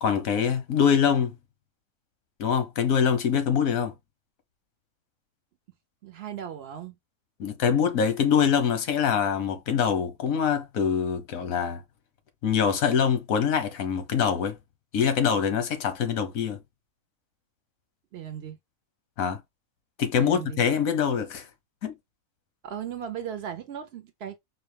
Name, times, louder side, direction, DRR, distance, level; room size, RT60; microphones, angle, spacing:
voice 1, 0.0-1.3 2.4-3.9 7.4-11.8 12.4-14.6 14.9-16.6 19.2-19.4 20.0-21.5 21.8-21.9, left 7 dB, 90° left, 1.3 m, -24 dB
voice 2, 6.0-6.9 18.1-18.6 20.2-20.6 22.6-24.4, right 9 dB, 65° right, 0.7 m, -37 dB
4.3 x 2.1 x 3.3 m
omnidirectional pair, 1.4 m